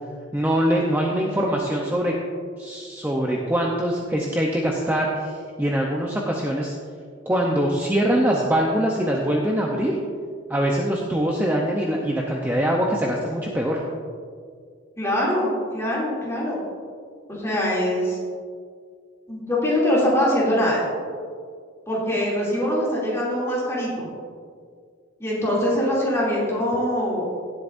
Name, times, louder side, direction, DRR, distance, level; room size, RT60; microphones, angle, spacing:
voice 1, 0.3-2.1 2.6-6.8 7.3-10.0 10.5-13.8, right 1 dB, 10° right, -2 dB, 0.7 m, -23 dB
voice 2, 15.0-16.6 17.3-18.2 19.3-20.8 21.9-24.1 25.2-27.2, equal, 15° left, -6 dB, 2.7 m, -23 dB
17.0 x 7.9 x 2.6 m, 2.1 s
head